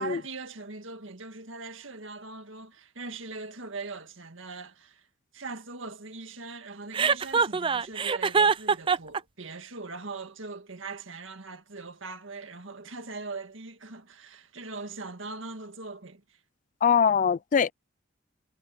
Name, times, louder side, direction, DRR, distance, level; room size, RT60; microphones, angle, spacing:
voice 1, 0.0-5.1 5.3-16.4, right 3 dB, 75° right, 1.9 m, -41 dB
Chuckle chortle, 6.9-9.2, right 5 dB, 25° right, 0.4 m, -23 dB
voice 2, 16.8-17.7, left 7 dB, 40° left, 0.3 m, -22 dB
head